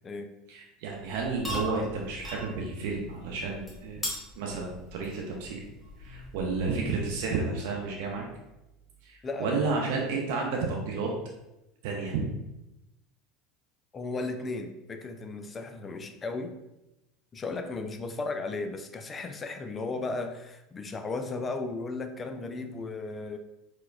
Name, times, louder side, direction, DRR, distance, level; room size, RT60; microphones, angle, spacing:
voice 1, 0.5-4.0 4.4-5.6 6.0-8.2 9.0-11.1 11.8-12.2, right 4 dB, 60° right, -1 dB, 0.5 m, -31 dB
sound 1, 1.0-7.4, equal, 10° left, 1.2 m, -40 dB
voice 2, 9.2-9.8 13.9-16.6 17.3-23.4, left 3 dB, 25° left, 6 dB, 0.3 m, -35 dB
4.5 x 2.1 x 2.3 m, 0.94 s
figure-of-eight pair, 75°, 0 cm